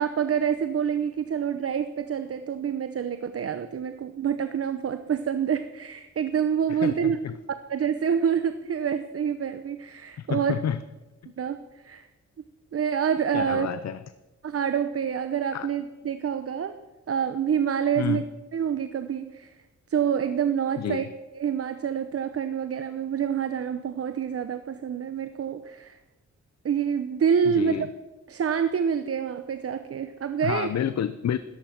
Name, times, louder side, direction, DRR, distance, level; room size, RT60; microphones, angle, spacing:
voice 1, 0.0-7.2 7.7-10.6 11.4-12.1 12.7-13.7 14.4-16.7 17.1-18.2 18.5-19.5 19.9-26.0 26.6-27.9 28.3-30.7, right 7 dB, 50° right, 10 dB, 0.8 m, -27 dB
voice 2, 6.7-7.4 10.2-10.8 13.3-14.0 15.5-15.7 18.0-18.2 20.8-21.0 27.5-27.9 30.4-31.4, left 9 dB, 65° left, 13 dB, 0.7 m, -29 dB
16.0 x 14.0 x 5.9 m, 1.1 s
wide cardioid pair, 115°, 29 cm